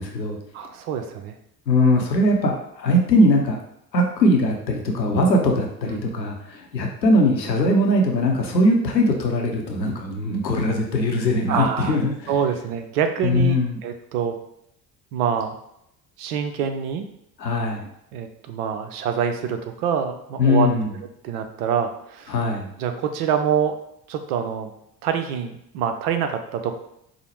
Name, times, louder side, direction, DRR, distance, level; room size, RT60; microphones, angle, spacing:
voice 1, 0.0-0.4 1.7-3.6 3.9-12.3 13.2-13.8 17.4-17.9 20.4-20.9 22.3-22.7, left 1 dB, 90° left, 1 dB, 0.7 m, -20 dB
voice 2, 0.5-1.3 5.8-6.0 11.5-12.0 12.3-13.6 13.8-14.4 15.1-15.5 16.2-17.0 18.1-20.7 21.2-22.3 22.8-23.8 24.1-24.7 25.0-26.7, right 8 dB, 65° right, 7 dB, 0.6 m, -25 dB
4.9 x 2.0 x 3.0 m, 0.76 s
figure-of-eight pair, 60°, 49 cm